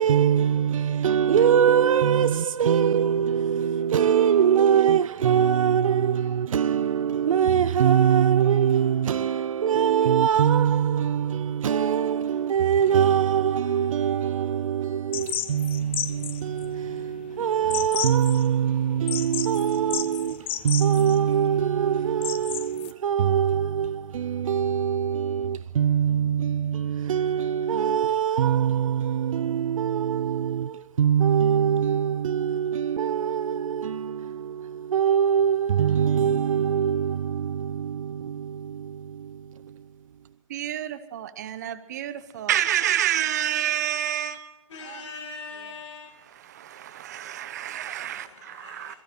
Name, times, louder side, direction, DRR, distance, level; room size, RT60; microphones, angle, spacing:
voice 1, 0.0-39.9, right 8 dB, 90° right, 0.5 m, -23 dB
sound 1, 15.1-22.9, left 11 dB, 20° left, 0.5 m, -34 dB
voice 2, 40.5-45.0 45.6-45.7 46.3-48.9, right 11 dB, 35° right, 1.0 m, -29 dB
voice 3, 44.7-46.3 47.8-49.0, left 4 dB, 60° left, 2.2 m, -42 dB
21.5 x 15.0 x 4.5 m
hypercardioid pair, 175°, 17 cm